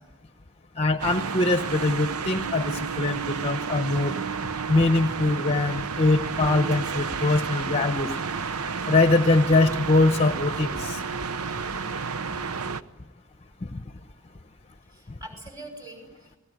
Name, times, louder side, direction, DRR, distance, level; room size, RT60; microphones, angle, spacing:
voice 1, 0.8-4.1 4.7-8.1 8.9-11.0, left 2 dB, 30° left, 9 dB, 0.9 m, -22 dB
sound 1, 1.0-12.8, right 5 dB, 85° right, 0.8 m, -31 dB
voice 2, 8.4-8.7 14.9-16.4, right 1 dB, 15° right, 5 dB, 5.8 m, -44 dB
29.5 x 19.5 x 9.4 m, 1.1 s
head